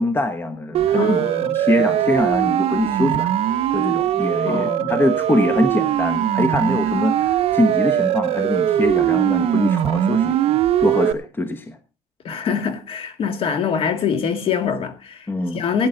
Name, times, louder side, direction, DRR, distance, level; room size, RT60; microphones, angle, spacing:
voice 1, 0.0-1.3 1.5-3.3 3.7-10.4 10.8-11.8 15.3-15.6, left 1 dB, 20° left, 1.1 m, -23 dB
Siren, 0.7-11.1, right 11 dB, 55° right, 0.8 m, -20 dB
voice 2, 0.9-1.9 4.4-5.1 12.2-15.9, left 6 dB, 50° left, 2.1 m, -25 dB
16.5 x 9.5 x 3.8 m
cardioid pair, 135°, 12 cm